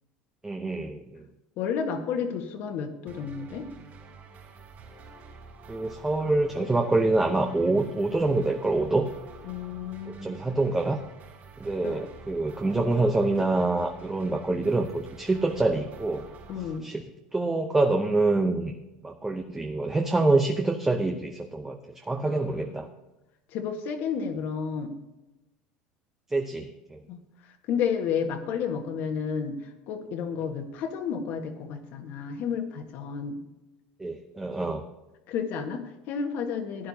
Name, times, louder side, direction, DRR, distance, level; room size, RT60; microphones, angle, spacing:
voice 1, 0.4-1.2 5.7-9.1 10.2-11.0 11.6-16.3 16.8-17.0 17.3-18.7 19.0-22.9 26.3-27.0 34.0-34.8, right 2 dB, 10° right, 3 dB, 0.8 m, -26 dB
voice 2, 1.6-3.7 9.4-10.4 11.8-12.0 16.5-16.9 22.2-22.8 23.5-24.9 27.1-33.4 35.3-36.9, left 6 dB, 60° left, 5 dB, 1.6 m, -31 dB
sound 1, 3.1-16.8, right 4 dB, 45° right, 4.3 m, -48 dB
15.5 x 10.0 x 2.9 m, 1.0 s
supercardioid pair, 110°, 4 cm